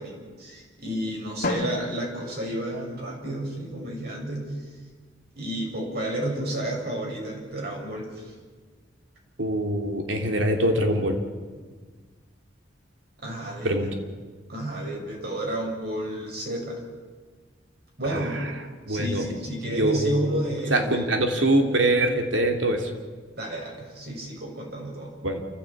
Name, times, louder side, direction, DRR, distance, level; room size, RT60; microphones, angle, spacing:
voice 1, 0.0-4.7 5.4-8.3 13.2-13.9 14.5-16.8 18.0-18.4 18.9-21.1 23.4-25.1, right 1 dB, 60° right, -1 dB, 6.9 m, -31 dB
Drum, 1.4-3.4, left 2 dB, 50° left, 2.2 m, -33 dB
voice 2, 9.4-11.2 13.6-13.9 18.1-18.2 18.9-19.2 19.7-20.4 20.7-22.9 25.2-25.4, right 1 dB, 90° right, 4 dB, 3.1 m, -23 dB
28.5 x 15.0 x 8.5 m, 1.5 s
head